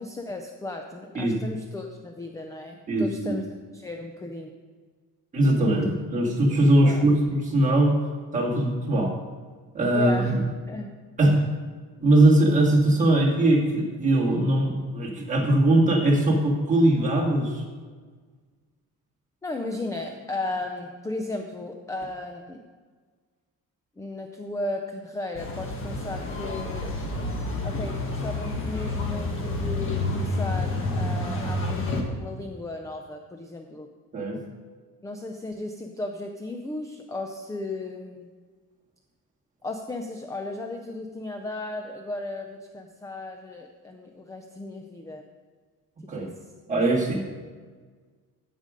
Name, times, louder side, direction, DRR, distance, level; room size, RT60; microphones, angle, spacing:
voice 1, 0.0-4.5 6.8-7.0 9.9-10.4 10.7-10.9 11.3-11.4 19.4-22.6 24.0-27.0 27.6-33.9 35.0-38.3 39.6-45.2 46.0-46.4, left 2 dB, 10° left, 4 dB, 0.5 m, -35 dB
voice 2, 2.9-3.4 5.3-8.0 8.3-9.1 9.7-10.4 11.2-11.4 12.0-17.6 34.1-34.4 46.1-46.3 46.7-47.2, right 1 dB, 20° right, -4 dB, 2.1 m, -21 dB
sound 1, 25.3-32.0, left 2 dB, 35° left, 1.5 m, -29 dB
15.0 x 5.1 x 5.2 m, 1.5 s
cardioid pair, 160°, 36 cm